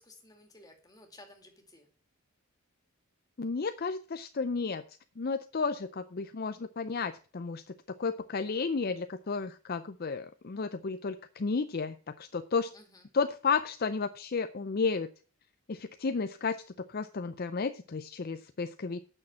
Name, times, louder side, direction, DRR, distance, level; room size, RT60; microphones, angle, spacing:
voice 1, 0.0-1.9 12.7-13.0, left 2 dB, 15° left, 3 dB, 2.2 m, -55 dB
voice 2, 3.4-4.8 5.2-7.6 7.9-12.7 13.1-15.1 15.7-19.0, left 4 dB, 45° left, 10 dB, 0.5 m, -32 dB
8.6 x 6.4 x 7.4 m, 0.39 s
head